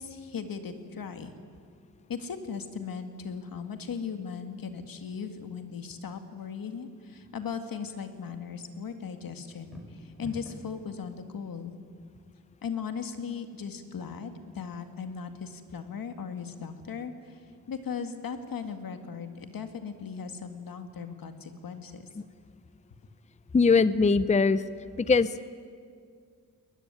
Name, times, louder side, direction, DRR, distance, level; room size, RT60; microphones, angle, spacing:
voice 1, 0.0-1.3 2.1-11.8 12.6-17.4 17.7-22.1, left 6 dB, 75° left, 7 dB, 2.1 m, -38 dB
sound 1, 9.5-10.8, equal, ahead, 6.0 m, -44 dB
voice 2, 23.5-24.6 25.0-25.5, left 4 dB, 20° left, 15 dB, 0.6 m, -21 dB
21.5 x 20.5 x 9.7 m, 2.1 s
wide cardioid pair, 105°, 34 cm